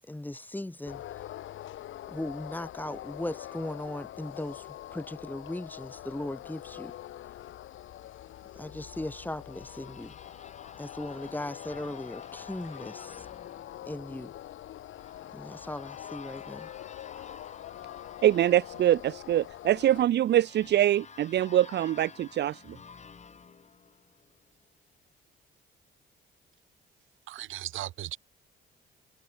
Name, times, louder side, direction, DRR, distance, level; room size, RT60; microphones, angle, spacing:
voice 1, 0.1-1.0 2.1-6.9 8.6-10.2 10.8-13.3 13.9-14.3 15.3-16.7, left 1 dB, 10° left, 2.6 m, -38 dB
sound 1, 0.9-20.0, left 13 dB, 80° left, 4.7 m, -44 dB
sound 2, 8.9-24.6, left 5 dB, 35° left, 1.9 m, -51 dB
voice 2, 18.2-22.8, right 12 dB, 60° right, 0.6 m, -24 dB
voice 3, 27.3-28.2, right 14 dB, 80° right, 1.6 m, -37 dB
cardioid pair, 90°, 20 cm